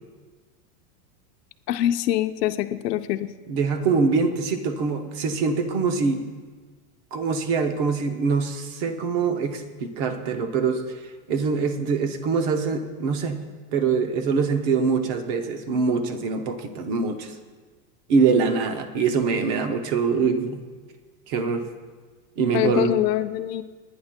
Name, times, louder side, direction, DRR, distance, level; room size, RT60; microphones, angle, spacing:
voice 1, 1.7-3.3 22.5-23.6, left 13 dB, 85° left, 9 dB, 0.8 m, -24 dB
voice 2, 3.5-6.2 7.1-11.0 11.3-13.4 13.7-17.4 18.1-20.6 21.3-21.7 22.4-23.0, right 5 dB, 25° right, 7 dB, 0.6 m, -24 dB
29.5 x 10.0 x 2.2 m, 1.4 s
supercardioid pair, 170°, 47 cm